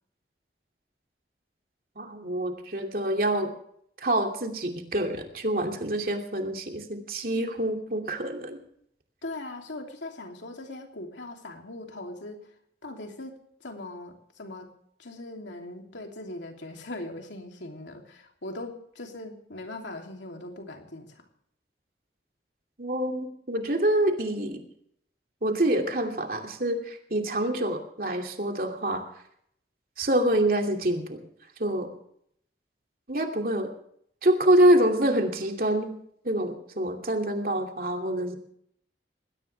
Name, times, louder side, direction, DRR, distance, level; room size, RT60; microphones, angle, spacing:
voice 1, 2.0-3.5 4.0-8.6 22.8-24.6 25.4-29.0 30.0-31.2 31.6-31.9 33.1-33.7 34.2-35.9 36.2-38.3, right 1 dB, 50° right, 3 dB, 2.7 m, -26 dB
voice 2, 9.2-12.5 12.8-14.7 15.0-21.2, left 2 dB, 85° left, 3 dB, 3.1 m, -40 dB
20.0 x 17.5 x 3.4 m, 0.68 s
head